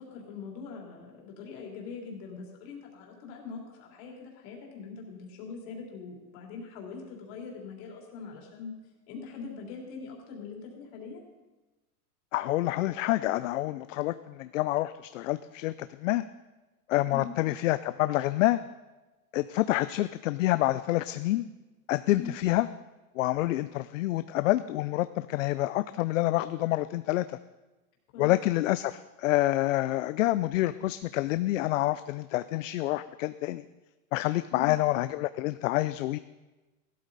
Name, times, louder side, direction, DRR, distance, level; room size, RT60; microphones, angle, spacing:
voice 1, 0.0-8.7 9.1-11.2 17.1-17.3 22.2-22.3 28.1-28.3 34.5-34.7, left 5 dB, 40° left, -1 dB, 3.3 m, -42 dB
voice 2, 12.3-16.2 16.9-18.6 19.3-21.5 21.9-22.7 23.2-27.4 28.2-33.6 34.1-36.2, left 16 dB, 60° left, 13 dB, 0.5 m, -27 dB
16.0 x 12.5 x 4.0 m, 1.1 s
supercardioid pair, 165°, 45 cm